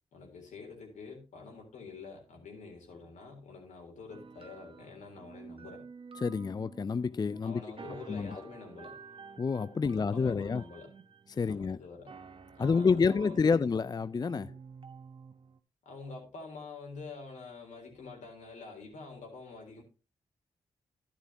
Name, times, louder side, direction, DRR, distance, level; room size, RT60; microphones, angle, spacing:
voice 1, 0.1-5.9 7.4-9.0 9.8-10.9 11.4-12.1 12.6-13.7 15.9-19.8, left 4 dB, 75° left, 3.7 m, -47 dB
sound 1, 4.1-15.6, right 5 dB, 45° right, 1.1 m, -50 dB
voice 2, 6.2-7.6 8.1-8.3 9.4-10.6 11.3-11.8 12.6-14.5, left 5 dB, 35° left, 0.4 m, -28 dB
11.5 x 10.0 x 2.8 m
supercardioid pair, 40°, 13 cm